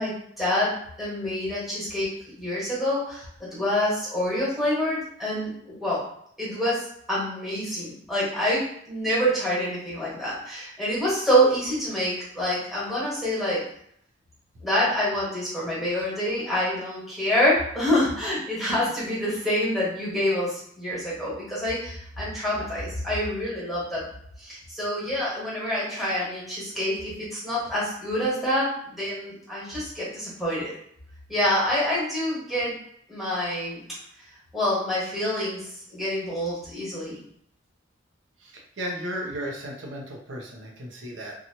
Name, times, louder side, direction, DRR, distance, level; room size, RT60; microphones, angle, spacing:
voice 1, 0.0-6.0 6.4-13.6 14.6-24.1 24.4-30.7 31.3-32.8 33.1-33.8 34.5-37.2, equal, ahead, -8 dB, 1.2 m, -27 dB
voice 2, 38.8-41.3, equal, 80° right, 0 dB, 0.6 m, -34 dB
2.8 x 2.3 x 2.8 m, 0.68 s
head